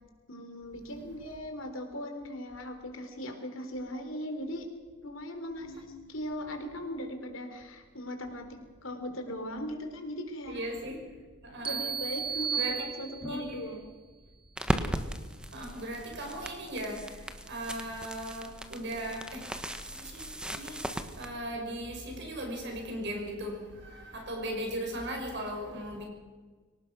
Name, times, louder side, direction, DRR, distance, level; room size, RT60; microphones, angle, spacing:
voice 1, 0.3-4.7 5.0-8.5 8.8-10.6 11.6-13.8, equal, 75° left, 3.7 m, -39 dB
voice 2, 10.5-11.1 11.4-12.0 12.5-12.8 13.2-13.7 15.5-19.7 20.0-20.9 21.2-26.1, right 1 dB, 60° right, 6.3 m, -38 dB
sound 1, 11.6-13.6, right 7 dB, 25° right, 1.1 m, -34 dB
sound 2, 14.6-21.3, equal, 5° right, 1.4 m, -37 dB
24.5 x 18.5 x 6.2 m
head